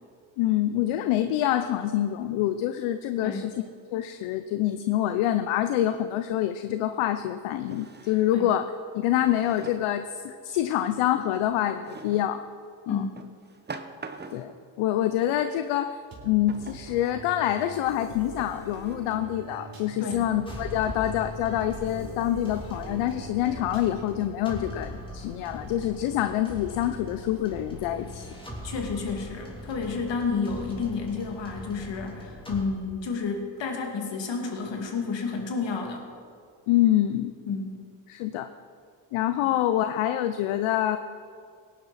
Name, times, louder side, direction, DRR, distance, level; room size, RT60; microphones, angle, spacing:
voice 1, 0.4-3.6 3.9-12.4 12.9-13.0 14.3-14.5 14.8-16.0 16.2-28.3 36.7-37.3 38.1-38.5 39.1-41.0, left 12 dB, 75° left, 10 dB, 0.7 m, -26 dB
Drawer open or close, 6.3-6.4 7.6-8.5 9.2-10.0 11.8-12.3 13.2-14.6 16.5-16.9 17.6-17.7 18.4-18.9, right 4 dB, 20° right, 1.0 m, -43 dB
voice 2, 12.9-13.2 20.0-20.3 28.6-36.1 37.5-37.8, left 4 dB, 60° left, 2 dB, 2.5 m, -31 dB
sound 1, 16.1-24.2, right 3 dB, 45° right, 3.3 m, -44 dB
sound 2, 20.5-32.6, left 1 dB, 10° left, 3.1 m, -40 dB
18.0 x 10.5 x 4.2 m, 2.2 s
supercardioid pair, 70°, 50 cm